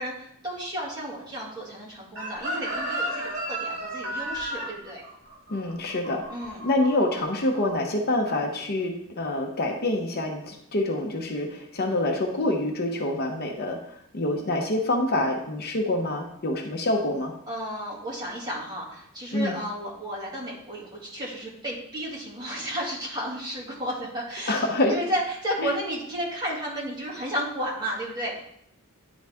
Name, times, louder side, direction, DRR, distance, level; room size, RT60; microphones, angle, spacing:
voice 1, 0.0-5.0 6.3-6.7 17.5-28.4, equal, 20° right, -6 dB, 2.2 m, -33 dB
Chicken rooster, 2.2-7.1 7.4-7.7, right 1 dB, 60° right, 2.3 m, -33 dB
voice 2, 5.5-6.2 6.6-17.3 19.3-19.6 24.5-25.0 25.6-25.7, left 1 dB, 50° left, 2 dB, 0.8 m, -26 dB
10.5 x 4.0 x 3.5 m, 0.73 s
head